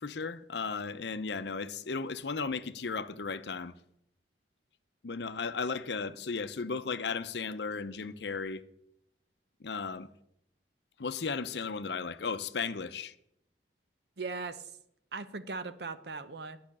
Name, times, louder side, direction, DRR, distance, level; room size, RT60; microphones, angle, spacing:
voice 1, 0.0-3.7 5.0-8.6 9.6-10.1 11.0-13.1, left 5 dB, 75° left, 0.7 m, -35 dB
voice 2, 14.2-14.7 15.1-16.6, right 4 dB, 65° right, 0.8 m, -39 dB
10.5 x 5.7 x 8.8 m
head